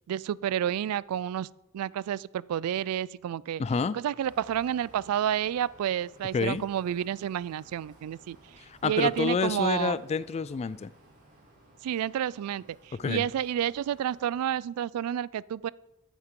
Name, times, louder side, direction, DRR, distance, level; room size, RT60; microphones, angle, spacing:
voice 1, 0.1-1.5 1.7-3.6 3.9-8.4 8.8-10.0 11.8-15.7, right 10 dB, 90° right, 18 dB, 0.3 m, -30 dB
voice 2, 3.6-4.0 6.3-6.6 8.6-10.9 13.0-13.3, left 5 dB, 30° left, 17 dB, 0.3 m, -28 dB
sound 1, 4.2-14.6, right 1 dB, 40° right, 3.6 m, -57 dB
13.0 x 8.1 x 3.7 m, 0.99 s
head